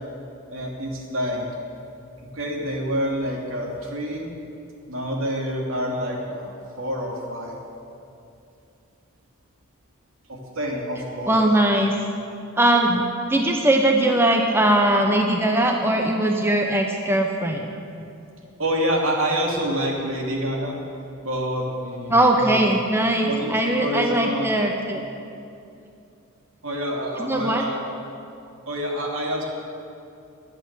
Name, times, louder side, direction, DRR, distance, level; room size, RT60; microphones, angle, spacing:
voice 1, 0.5-1.5 2.2-4.3 4.9-7.6 10.3-11.4 18.6-20.8 21.2-22.6 23.3-24.5 26.6-27.8 28.7-29.4, equal, 65° right, -1 dB, 2.8 m, -27 dB
voice 2, 11.3-11.9 12.6-17.7 22.1-25.0 27.2-27.6, right 1 dB, 10° right, 2 dB, 0.8 m, -20 dB
22.0 x 8.3 x 7.5 m, 2.6 s
head